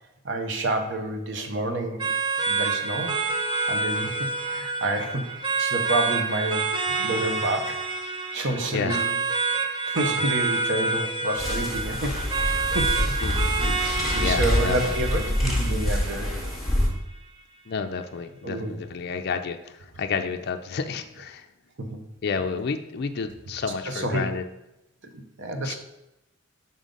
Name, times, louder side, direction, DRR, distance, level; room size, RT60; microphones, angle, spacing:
voice 1, 0.2-2.1 2.5-3.2 3.7-7.8 8.3-9.2 9.8-12.5 12.7-13.0 14.1-16.5 18.4-18.7 21.8-22.0 23.9-24.3 25.4-25.8, right 2 dB, 60° right, 5 dB, 0.8 m, -29 dB
sound 1, 2.0-17.0, right 4 dB, 25° right, 0.4 m, -28 dB
voice 2, 8.7-9.1 13.0-15.0 17.7-21.5 22.2-24.4 25.6-25.8, left 5 dB, 50° left, 7 dB, 0.4 m, -31 dB
sound 2, 11.4-16.9, left 1 dB, ahead, 1.2 m, -26 dB
5.6 x 3.8 x 5.3 m, 0.90 s
head